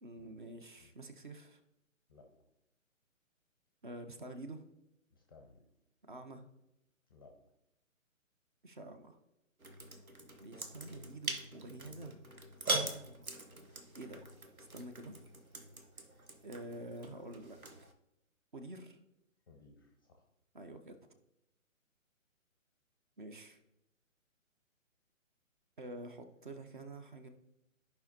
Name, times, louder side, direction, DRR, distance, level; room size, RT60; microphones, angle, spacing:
voice 1, 0.0-1.6 3.8-4.6 6.0-6.4 8.6-9.2 10.4-12.2 13.9-14.3 14.7-15.1 16.4-17.6 18.5-19.0 20.5-21.0 23.2-23.6 25.8-27.3, right 2 dB, 35° right, 7 dB, 0.7 m, -48 dB
voice 2, 5.1-5.6 7.1-7.3 19.5-20.3, left 3 dB, 15° left, 2 dB, 0.6 m, -60 dB
sound 1, 9.6-17.9, right 2 dB, 90° right, 1.1 m, -42 dB
13.5 x 5.2 x 2.8 m, 0.88 s
figure-of-eight pair, 140°, 41 cm